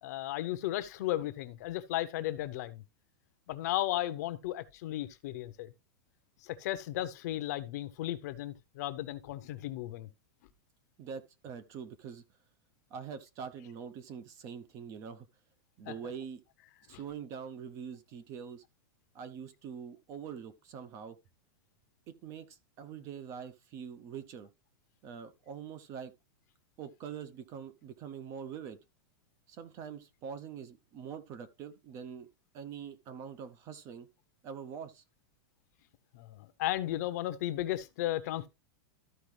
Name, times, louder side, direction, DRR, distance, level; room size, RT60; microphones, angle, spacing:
voice 1, 0.0-2.8 3.5-5.7 6.4-10.1 15.9-16.0 16.9-17.0 36.1-38.5, left 14 dB, 45° left, 0.7 m, -35 dB
voice 2, 11.0-12.2 12.9-15.3 15.8-16.4 16.9-18.6 19.1-21.2 22.1-24.5 25.0-26.1 26.8-28.8 29.5-32.3 32.5-34.1 34.4-35.0, right 7 dB, 25° right, 0.6 m, -44 dB
13.5 x 4.7 x 3.2 m
supercardioid pair, 175°, 12 cm